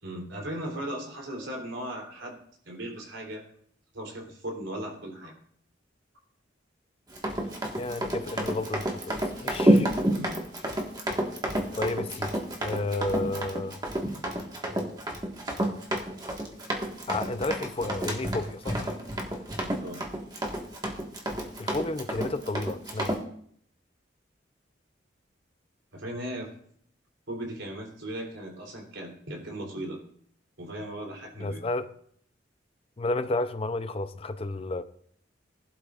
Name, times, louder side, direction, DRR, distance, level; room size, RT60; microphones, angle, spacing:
voice 1, 0.0-2.4 2.6-3.5 3.9-5.4 10.1-10.4 19.5-20.0 25.9-26.5 27.3-30.0 30.6-31.6, right 1 dB, 85° right, 3.4 m, -37 dB
Run, 7.1-23.2, right 1 dB, 20° right, 1.5 m, -29 dB
voice 2, 7.7-9.9 11.8-13.8 17.1-19.0 21.6-23.2 31.4-31.9 33.0-34.8, left 2 dB, 30° left, 0.5 m, -32 dB
20.0 x 11.5 x 2.5 m
head